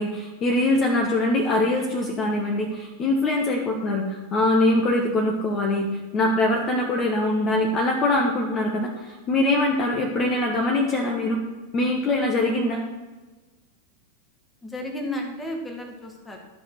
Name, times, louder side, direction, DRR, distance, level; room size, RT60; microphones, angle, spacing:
voice 1, 0.0-5.9 6.1-11.4 11.7-12.8, left 2 dB, 30° left, 0 dB, 1.4 m, -23 dB
voice 2, 14.6-16.4, left 1 dB, 10° left, 2 dB, 2.0 m, -33 dB
13.0 x 5.5 x 6.0 m, 1.2 s
figure-of-eight pair, 90°, 0 cm